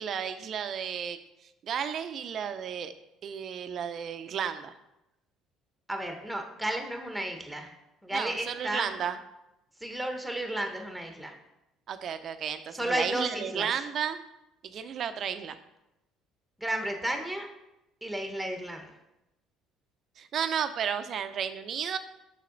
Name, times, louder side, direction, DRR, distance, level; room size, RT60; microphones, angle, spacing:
voice 1, 0.0-2.9 3.2-4.7 8.1-9.2 11.9-14.2 14.6-15.6 20.2-22.0, right 8 dB, 55° right, 10 dB, 0.5 m, -33 dB
voice 2, 5.9-7.7 8.0-8.9 9.8-11.3 12.7-13.7 16.6-17.5 18.0-18.9, right 1 dB, 5° right, 4 dB, 1.1 m, -33 dB
6.5 x 5.6 x 3.9 m, 0.92 s
supercardioid pair, 80°, 0 cm